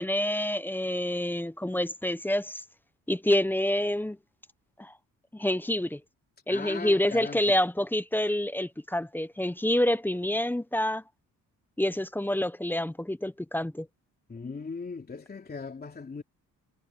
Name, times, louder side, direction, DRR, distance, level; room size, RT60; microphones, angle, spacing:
voice 1, 0.0-2.6 3.1-4.2 4.8-4.9 5.3-6.0 6.5-11.0 11.8-13.9, left 1 dB, 5° left, 0.9 m, -27 dB
voice 2, 6.5-7.4 14.3-16.2, left 4 dB, 25° left, 3.2 m, -38 dB
cardioid pair, 95°, 34 cm